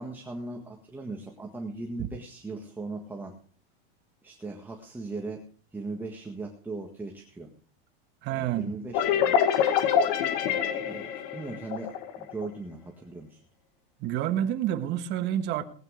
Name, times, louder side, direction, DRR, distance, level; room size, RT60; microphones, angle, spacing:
voice 1, 0.0-3.3 4.2-5.4 5.7-7.5 8.3-9.5 10.4-13.4, right 3 dB, 5° right, 1.7 m, -39 dB
voice 2, 8.2-8.7 14.0-15.6, right 11 dB, 35° right, 1.5 m, -28 dB
sound 1, 8.9-12.5, left 8 dB, 50° left, 1.9 m, -25 dB
19.0 x 9.1 x 5.1 m
supercardioid pair, 160°, 29 cm